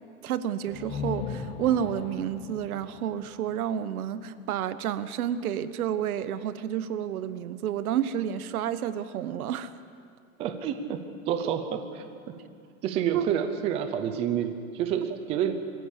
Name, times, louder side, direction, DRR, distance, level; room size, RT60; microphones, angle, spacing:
voice 1, 0.2-9.7 13.1-13.2, right 10 dB, 75° right, 13 dB, 1.2 m, -30 dB
sound 1, 0.6-4.4, left 6 dB, 15° left, 0.8 m, -38 dB
voice 2, 10.4-12.0 12.8-15.5, right 9 dB, 15° right, 7 dB, 0.5 m, -29 dB
22.5 x 15.5 x 8.4 m, 2.3 s
supercardioid pair, 170°, 43 cm